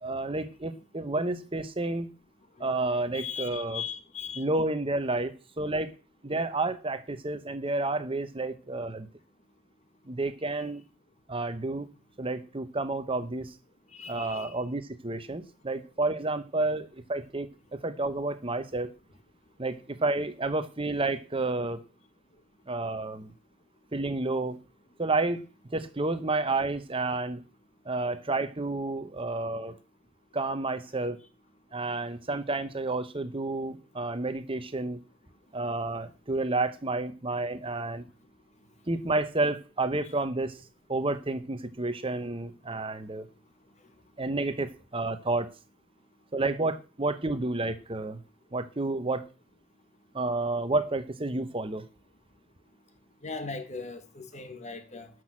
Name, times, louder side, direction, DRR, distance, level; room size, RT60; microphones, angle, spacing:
voice 1, 0.0-2.1 2.6-3.8 4.4-5.9 6.2-9.1 10.1-10.8 11.3-11.9 12.2-13.5 14.1-18.9 19.6-21.8 22.7-23.3 23.9-24.6 25.0-25.4 25.7-27.4 27.8-29.8 30.3-31.2 31.7-35.0 35.5-38.0 38.9-40.6 40.9-43.3 44.2-45.5 46.3-48.2 48.5-49.3 50.1-51.8, right 2 dB, 25° right, 0.9 m, -30 dB
voice 2, 2.6-4.4 10.5-10.7 13.9-14.6 53.2-55.1, left 5 dB, 35° left, 1.5 m, -39 dB
12.5 x 6.2 x 7.5 m
head